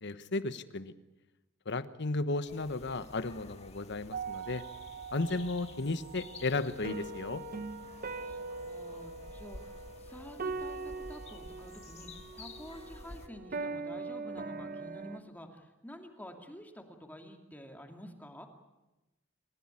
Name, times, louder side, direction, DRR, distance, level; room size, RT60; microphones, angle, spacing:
voice 1, 0.0-0.9 1.6-4.6 5.1-7.4, left 2 dB, 60° left, 12 dB, 1.2 m, -34 dB
sound 1, 2.5-13.3, left 2 dB, 30° left, 1.7 m, -51 dB
sound 2, 4.1-15.2, right 4 dB, 45° right, 1.1 m, -42 dB
voice 2, 8.2-18.5, equal, 10° left, 3 dB, 2.5 m, -50 dB
27.5 x 15.0 x 9.9 m, 1.0 s
head